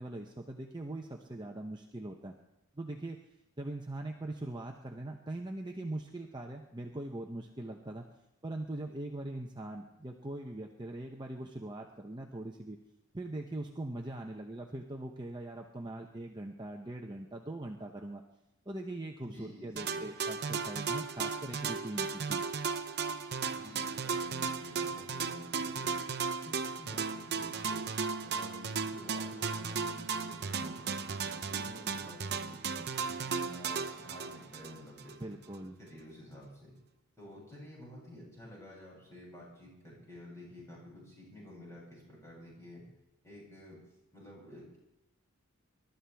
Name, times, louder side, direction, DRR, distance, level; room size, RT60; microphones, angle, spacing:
voice 1, 0.0-2.3 2.7-3.2 3.6-8.1 8.4-12.8 13.1-18.2 18.7-22.4 35.2-35.8, right 1 dB, 20° right, 2 dB, 0.8 m, -41 dB
voice 2, 19.2-20.3 23.5-26.0 26.4-27.9 28.2-32.9 33.2-35.3 35.8-36.8 37.2-42.9 43.2-43.8 44.1-44.8, left 1 dB, 15° left, -5 dB, 7.1 m, -50 dB
sound 1, 19.8-35.2, right 5 dB, 50° right, 0.8 m, -36 dB
26.5 x 13.0 x 3.5 m, 0.91 s
head